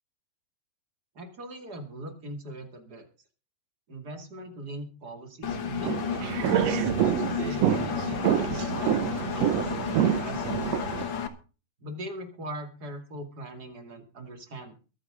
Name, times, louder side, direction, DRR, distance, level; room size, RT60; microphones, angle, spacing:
voice 1, 1.1-3.1 3.9-11.2 11.8-14.7, right 1 dB, 30° right, 5 dB, 2.5 m, -41 dB
Engine, 5.4-11.3, left 7 dB, 55° left, 1.3 m, -32 dB
sound 1, 5.8-11.0, right 12 dB, 75° right, 1.5 m, -27 dB
23.0 x 9.1 x 3.8 m, 0.35 s
omnidirectional pair, 4.0 m